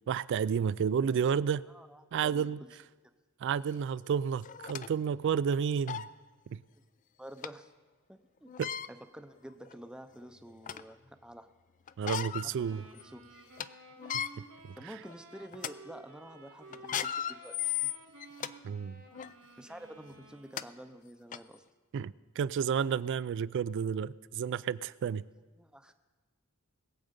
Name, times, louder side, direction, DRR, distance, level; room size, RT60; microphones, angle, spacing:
voice 1, 0.1-1.6 2.1-2.6 3.4-6.0 6.5-6.6 8.6-8.7 12.0-12.8 18.6-19.0 21.9-25.2, right 7 dB, 55° right, 19 dB, 0.3 m, -31 dB
voice 2, 1.7-2.7 7.2-7.7 8.1-8.5 8.9-11.5 12.4-13.5 14.8-17.9 19.6-21.6 25.6-25.9, right 1 dB, 5° right, 8 dB, 0.6 m, -49 dB
sound 1, 3.7-3.8 4.4-4.9 5.5-5.6 5.9-6.1 7.4-7.5 8.5-8.9 9.7-9.8 10.2-10.9 11.9-12.5 12.9-13.0 13.4-13.7 14.0-14.3 14.9-15.1 15.5-15.7 16.7-18.5 19.1-19.3 20.2-20.3 20.6-20.7 21.3-21.4, left 10 dB, 35° left, 0.3 m, -36 dB
sound 2, 12.5-20.9, right 2 dB, 80° right, 2.6 m, -54 dB
21.0 x 7.8 x 5.1 m, 1.3 s
head